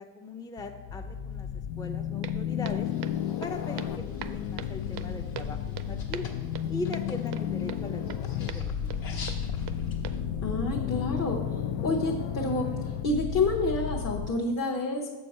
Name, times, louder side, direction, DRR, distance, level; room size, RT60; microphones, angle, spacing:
voice 1, 0.0-1.5 1.8-2.9 3.4-6.2 6.7-8.1 8.4-9.1, left 2 dB, 10° left, 4 dB, 0.4 m, -40 dB
sound 1, 0.6-14.3, left 9 dB, 85° left, 0.6 m, -33 dB
Walk footsteps, 2.2-10.1, right 9 dB, 80° right, 0.6 m, -43 dB
sound 2, 2.8-10.2, left 3 dB, 65° left, 1.3 m, -48 dB
voice 2, 10.4-11.4 11.8-15.1, left 2 dB, 45° left, -1 dB, 0.9 m, -28 dB
7.1 x 4.6 x 6.4 m, 1.3 s
cardioid pair, 115°, 40 cm